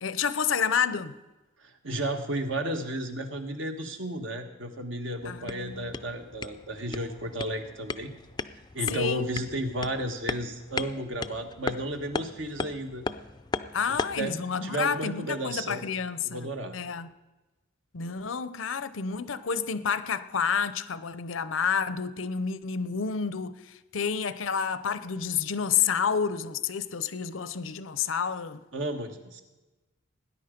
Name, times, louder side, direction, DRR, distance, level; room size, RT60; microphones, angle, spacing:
voice 1, 0.0-1.2 5.2-5.9 8.9-9.3 13.7-16.5 16.7-17.1 17.9-28.6, left 6 dB, 80° left, 0.7 m, -29 dB
voice 2, 1.6-8.1 8.7-13.0 14.2-15.9 16.2-16.7 28.7-29.4, right 1 dB, 70° right, 1.4 m, -33 dB
sound 1, 5.2-14.3, left 4 dB, 20° left, 0.4 m, -37 dB
18.5 x 10.0 x 5.2 m
head